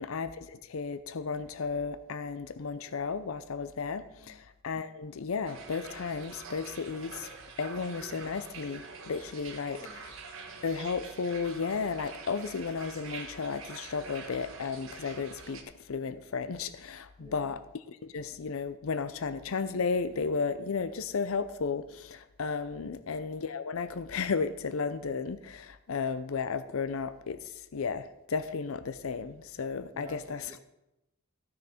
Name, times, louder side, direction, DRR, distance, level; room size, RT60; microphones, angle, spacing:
voice 1, 0.0-7.3 7.6-9.8 10.6-17.6 18.0-30.5, left 5 dB, 75° left, 13 dB, 0.5 m, -34 dB
sound 1, 5.4-15.6, right 4 dB, 65° right, 1.4 m, -46 dB
voice 2, 9.6-10.0 17.2-17.6 22.8-23.1 29.9-30.6, right 2 dB, 15° right, 0 dB, 1.5 m, -51 dB
14.5 x 6.5 x 4.3 m, 0.92 s
head